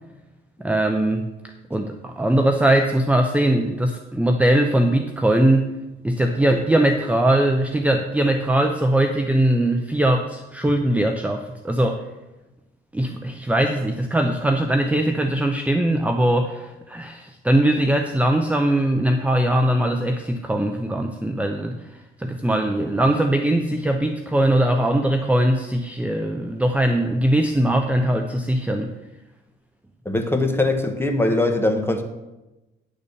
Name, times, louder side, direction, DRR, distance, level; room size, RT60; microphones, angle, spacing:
voice 1, 0.6-1.3 1.7-5.7 6.0-12.0 12.9-21.8 22.2-28.9, right 1 dB, 5° right, 4 dB, 0.7 m, -20 dB
voice 2, 30.0-32.0, left 2 dB, 10° left, 5 dB, 1.2 m, -21 dB
10.5 x 4.2 x 6.9 m, 1.0 s
cardioid pair, 90°, 20 cm